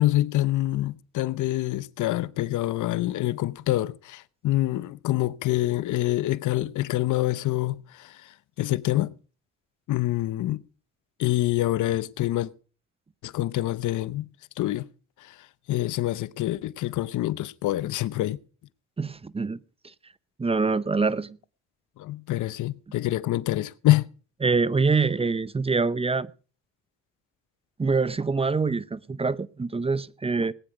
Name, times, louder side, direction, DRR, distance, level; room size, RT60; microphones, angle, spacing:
voice 1, 0.0-8.3 8.6-9.1 9.9-10.6 11.2-12.5 13.2-14.3 14.6-14.9 15.2-15.3 15.7-18.4 22.0-24.1, left 15 dB, 80° left, 0.8 m, -26 dB
voice 2, 19.0-19.6 20.4-21.4 24.4-26.3 27.8-30.5, right 4 dB, 20° right, 0.7 m, -25 dB
19.5 x 9.6 x 4.8 m
cardioid pair, 90°, 30 cm